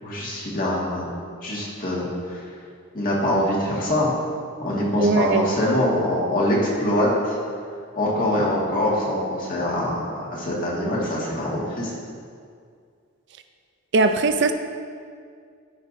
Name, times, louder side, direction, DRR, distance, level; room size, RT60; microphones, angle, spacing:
voice 1, 0.0-1.1 1.4-2.4 2.9-4.1 4.6-7.4 8.0-11.9, left 1 dB, 40° left, -5 dB, 1.8 m, -24 dB
voice 2, 5.0-5.5 13.9-14.5, right 3 dB, 55° right, 8 dB, 0.5 m, -20 dB
14.0 x 5.5 x 2.7 m, 2.2 s
head